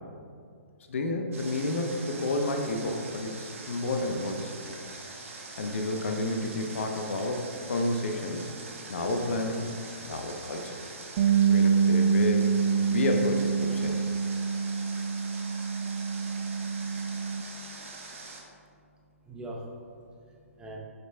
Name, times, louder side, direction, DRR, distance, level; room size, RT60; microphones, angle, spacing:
voice 1, 0.9-4.8 5.6-8.4 8.9-9.7 10.0-10.8 11.5-12.5 12.9-14.0, left 2 dB, 60° left, 4 dB, 0.7 m, -30 dB
Water, 1.3-18.4, right 3 dB, 65° right, 1.2 m, -44 dB
Bass guitar, 11.2-17.4, right 6 dB, 45° right, 0.4 m, -26 dB
voice 2, 16.2-17.2 17.5-18.2 18.7-20.8, right 1 dB, 10° right, -2 dB, 0.8 m, -46 dB
10.0 x 5.2 x 2.2 m, 2.3 s
figure-of-eight pair, 125°, 8 cm